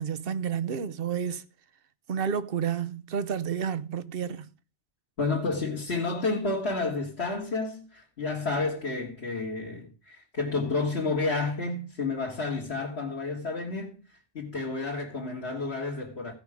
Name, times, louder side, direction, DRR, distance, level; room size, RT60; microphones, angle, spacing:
voice 1, 0.0-1.4 2.1-4.5, right 7 dB, 60° right, 0.9 m, -30 dB
voice 2, 5.2-16.3, left 3 dB, 65° left, 2.2 m, -30 dB
16.0 x 5.5 x 4.9 m
omnidirectional pair, 1.2 m